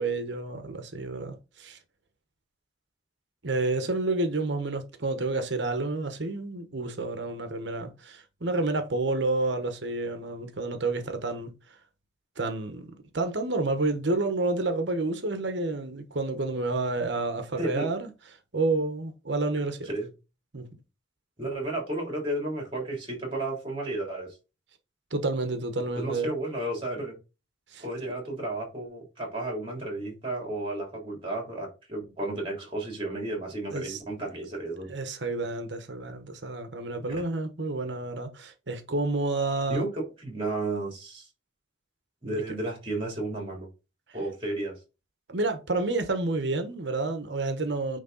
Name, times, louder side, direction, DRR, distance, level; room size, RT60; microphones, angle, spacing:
voice 1, 0.0-1.8 3.4-11.5 12.4-18.1 18.5-19.9 20.5-20.7 25.1-26.3 27.7-27.8 33.7-34.0 34.9-39.8 42.2-42.4 45.3-48.0, right 2 dB, 70° right, 1.1 m, -29 dB
voice 2, 17.6-17.9 19.8-20.1 21.4-24.4 25.9-27.2 27.8-34.9 39.7-41.3 42.2-43.7 44.1-44.8, right 2 dB, 25° right, 3.3 m, -33 dB
9.3 x 3.4 x 4.0 m
head